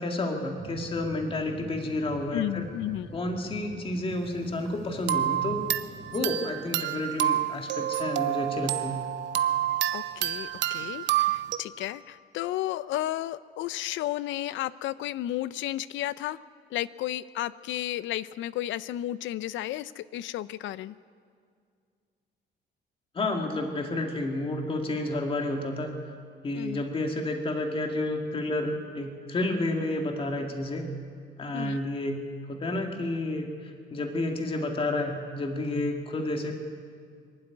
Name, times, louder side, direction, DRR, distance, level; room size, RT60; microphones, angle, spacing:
voice 1, 0.0-2.7 3.1-5.6 6.1-9.0 23.1-25.9 26.4-30.8 31.4-32.2 32.5-36.5, left 2 dB, 30° left, 3 dB, 2.1 m, -30 dB
sound 1, 0.6-6.3, right 4 dB, 20° right, 1.4 m, -46 dB
voice 2, 2.3-3.1 9.9-16.4 16.7-21.0 26.5-26.9 31.5-31.8, left 14 dB, 90° left, 17 dB, 0.6 m, -33 dB
sound 2, 5.1-11.6, right 12 dB, 70° right, 0.8 m, -28 dB
23.5 x 12.0 x 9.7 m, 2.2 s
cardioid pair, 145°, 19 cm